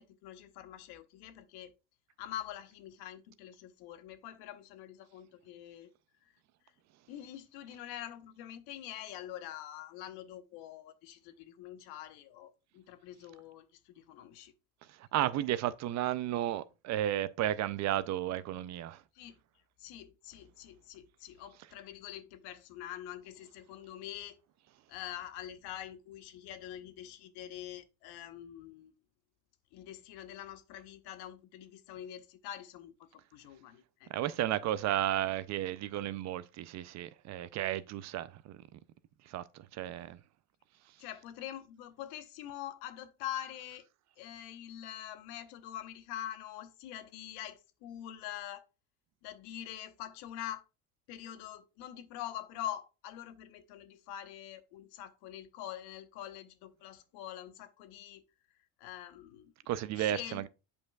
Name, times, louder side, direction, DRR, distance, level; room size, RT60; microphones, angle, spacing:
voice 1, 0.0-1.7 2.2-5.9 6.2-6.3 7.1-14.5 19.1-19.4 19.8-24.4 24.9-28.9 29.7-34.4 41.0-43.8 44.2-48.7 49.2-50.6 51.1-58.2 58.8-59.5 60.0-60.5, left 11 dB, 65° left, 1.0 m, -45 dB
voice 2, 15.1-19.0 34.1-38.6 39.3-39.4 39.7-40.2 43.3-43.4 59.7-60.5, right 13 dB, 45° right, 0.4 m, -33 dB
8.3 x 5.3 x 2.3 m
supercardioid pair, 110°, 41 cm